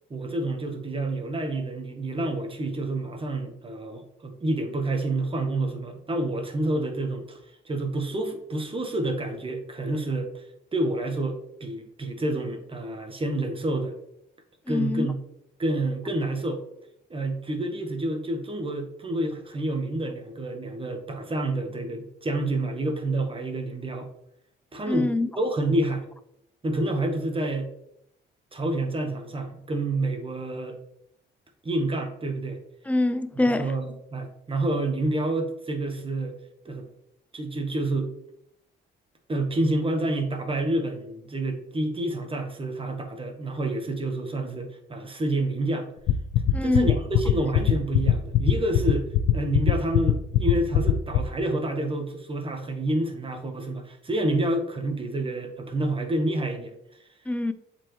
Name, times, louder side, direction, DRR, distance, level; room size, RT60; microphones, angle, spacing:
voice 1, 0.1-7.4 7.6-10.4 10.7-14.0 14.7-15.2 15.6-16.6 17.1-24.1 24.7-26.0 26.6-27.7 28.5-30.8 31.6-32.6 33.6-36.4 36.6-36.9 37.3-38.1 39.3-45.9 46.6-56.7, right 1 dB, 25° right, 1.2 m, -28 dB
voice 2, 14.7-15.1 24.9-25.3 32.9-33.7 46.5-46.9 57.3-57.5, left 2 dB, 5° left, 0.5 m, -24 dB
sound 1, 46.1-51.2, left 14 dB, 85° left, 0.6 m, -19 dB
7.4 x 4.4 x 3.1 m
cardioid pair, 90°, 20 cm